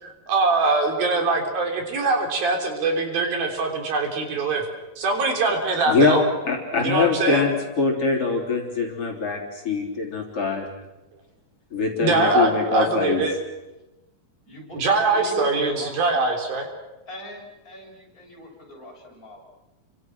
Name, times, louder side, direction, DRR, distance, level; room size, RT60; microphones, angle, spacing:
voice 1, 0.0-4.6 5.0-6.2 6.8-7.5 12.0-13.4 14.7-16.7, right 3 dB, 85° right, 3 dB, 5.4 m, -22 dB
voice 2, 5.9-6.2 6.5-10.6 11.7-13.2, left 4 dB, 40° left, 0 dB, 4.2 m, -23 dB
voice 3, 14.5-16.4 17.1-19.4, left 1 dB, 20° left, -2 dB, 7.6 m, -38 dB
29.5 x 25.0 x 6.2 m, 1.0 s
omnidirectional pair, 4.1 m